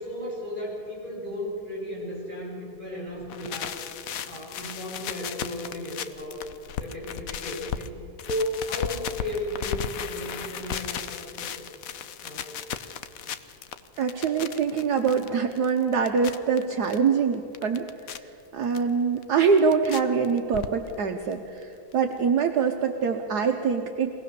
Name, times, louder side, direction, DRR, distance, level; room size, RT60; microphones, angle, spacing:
voice 1, 0.0-3.8 4.2-6.4 6.8-7.9 8.2-11.7 12.2-12.5, left 1 dB, 25° left, -5 dB, 6.3 m, -34 dB
sound 1, 3.2-7.9 8.2-17.0 17.3-18.2 18.7-18.8 19.2-20.0 20.2-21.0 21.3-21.4 21.6-21.7 21.9-22.0, left 8 dB, 60° left, 1.0 m, -35 dB
voice 2, 14.0-17.9 18.2-24.1, right 5 dB, 65° right, 4 dB, 1.4 m, -24 dB
23.5 x 18.0 x 6.8 m, 2.9 s
omnidirectional pair, 2.0 m